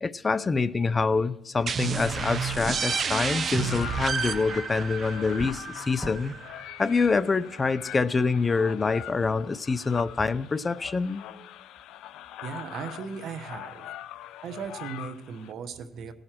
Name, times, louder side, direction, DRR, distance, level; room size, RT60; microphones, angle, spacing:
voice 1, 0.0-6.3 6.8-11.2, left 4 dB, 30° left, 0.5 m, -26 dB
sound 1, 1.7-7.1, right 6 dB, 50° right, 0.7 m, -31 dB
sound 2, 2.0-15.5, left 12 dB, 90° left, 0.4 m, -43 dB
sound 3, 5.2-8.3, equal, 10° right, 0.7 m, -45 dB
voice 2, 12.4-13.9 14.4-16.1, right 6 dB, 75° right, 1.0 m, -37 dB
18.0 x 6.4 x 4.4 m
cardioid pair, 90°, 0 cm